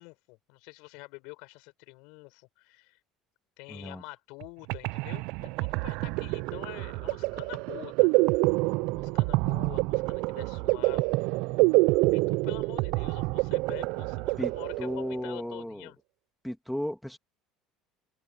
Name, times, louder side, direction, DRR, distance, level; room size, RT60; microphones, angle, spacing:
voice 1, 0.0-3.0 3.6-8.2 8.9-11.3 12.1-16.0, left 28 dB, 75° left, 7.4 m, -46 dB
voice 2, 3.7-4.0 14.4-14.5 14.8-15.9 16.4-17.2, equal, ahead, 2.5 m, -34 dB
sound 1, 4.4-4.5 4.7-15.3, right 24 dB, 75° right, 0.4 m, -27 dB
supercardioid pair, 95°, 0 cm